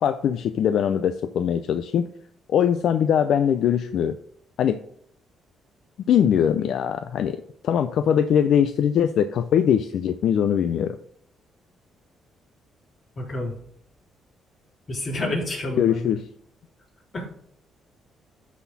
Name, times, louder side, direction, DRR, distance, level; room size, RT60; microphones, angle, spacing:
voice 1, 0.0-2.1 2.5-4.2 4.6-4.8 6.1-11.0 15.8-16.2, left 9 dB, 70° left, 10 dB, 0.4 m, -21 dB
voice 2, 13.2-13.5 14.9-16.2 17.1-17.3, left 1 dB, 40° left, -3 dB, 3.7 m, -29 dB
12.5 x 4.2 x 4.1 m, 0.67 s
cardioid pair, 90°, 0 cm